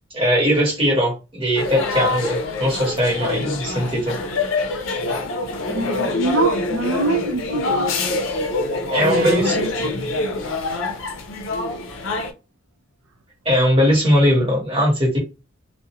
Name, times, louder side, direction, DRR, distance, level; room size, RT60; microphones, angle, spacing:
voice 1, 0.1-4.2 8.9-9.6 13.4-15.2, equal, 25° right, 1.0 m, -19 dB
sound 1, 1.6-12.3, left 2 dB, 70° left, 0.5 m, -25 dB
voice 2, 5.7-8.0 9.0-9.9, right 2 dB, 85° right, 0.5 m, -24 dB
2.4 x 2.1 x 2.9 m
head